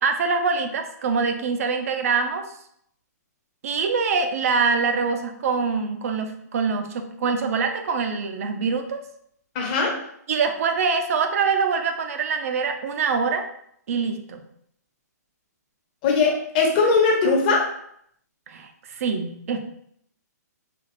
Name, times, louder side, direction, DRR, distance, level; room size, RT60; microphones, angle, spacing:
voice 1, 0.0-2.5 3.6-9.0 10.3-13.5 13.9-14.4 18.5-19.6, right 5 dB, 55° right, 7 dB, 0.5 m, -24 dB
voice 2, 9.5-10.0 16.0-17.7, left 4 dB, 35° left, 0 dB, 1.0 m, -20 dB
4.1 x 2.4 x 3.1 m, 0.70 s
hypercardioid pair, 155°, 9 cm